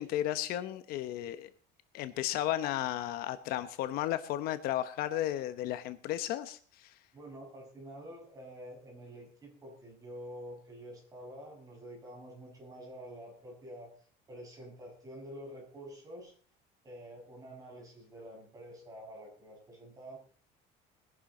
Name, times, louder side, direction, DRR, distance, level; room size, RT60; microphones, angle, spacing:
voice 1, 0.0-1.5 1.9-6.9, left 13 dB, 60° left, 11 dB, 1.1 m, -34 dB
voice 2, 7.1-13.9 14.3-16.3 16.8-20.2, equal, 20° right, -1 dB, 7.2 m, -48 dB
21.0 x 11.0 x 4.3 m, 0.43 s
cardioid pair, 170°, 18 cm